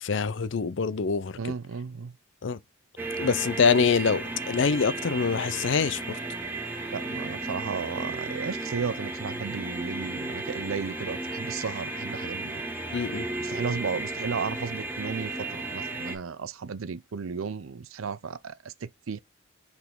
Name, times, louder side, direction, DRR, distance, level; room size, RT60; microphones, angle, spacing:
voice 1, 0.0-1.4 2.4-2.6 3.2-6.2 12.9-13.3, left 5 dB, 65° left, 0.5 m, -25 dB
voice 2, 1.4-2.1 6.9-12.6 13.4-19.2, right 5 dB, 85° right, 0.5 m, -34 dB
sound 1, 3.0-16.2, right 2 dB, 10° right, 1.5 m, -34 dB
6.8 x 4.2 x 3.6 m
head